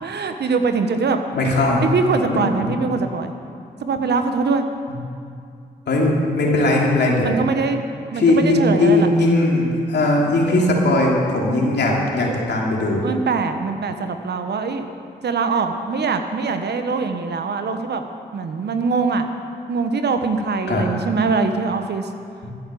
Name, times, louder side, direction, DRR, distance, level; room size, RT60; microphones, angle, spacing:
voice 1, 0.0-1.2 1.9-3.3 3.8-4.6 7.2-7.8 8.1-9.1 13.0-14.9 15.2-18.1 18.3-19.2 19.7-22.1, right 4 dB, 60° right, 7 dB, 1.1 m, -22 dB
voice 2, 1.3-1.8 2.2-2.7 4.9-5.0 5.9-7.3 8.1-13.0 20.7-20.8 22.4-22.5, left 2 dB, 65° left, -2 dB, 2.9 m, -19 dB
13.5 x 9.2 x 7.1 m, 2.4 s
supercardioid pair, 45°, 19 cm